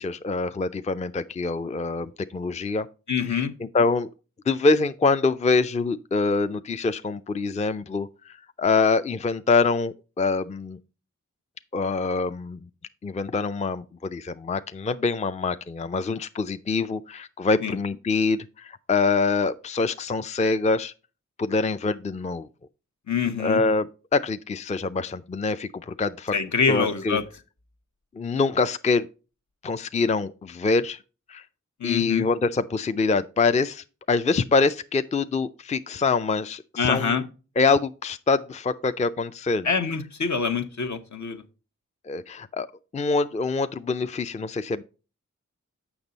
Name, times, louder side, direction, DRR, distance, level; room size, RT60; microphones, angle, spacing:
voice 1, 0.0-2.9 3.2-4.1 4.5-10.8 11.7-12.6 13.0-20.9 21.4-22.5 23.4-23.9 24.1-26.3 26.7-27.2 28.2-29.1 29.6-31.0 31.3-31.4 31.8-37.2 37.6-39.7 42.1-42.7 42.9-44.8, left 4 dB, 25° left, 0.4 m, -25 dB
voice 2, 3.1-3.5 17.6-17.8 23.1-23.6 26.3-27.2 31.8-32.3 36.8-37.2 39.6-41.4, left 5 dB, 65° left, 1.0 m, -25 dB
7.1 x 6.0 x 4.0 m
cardioid pair, 50°, 31 cm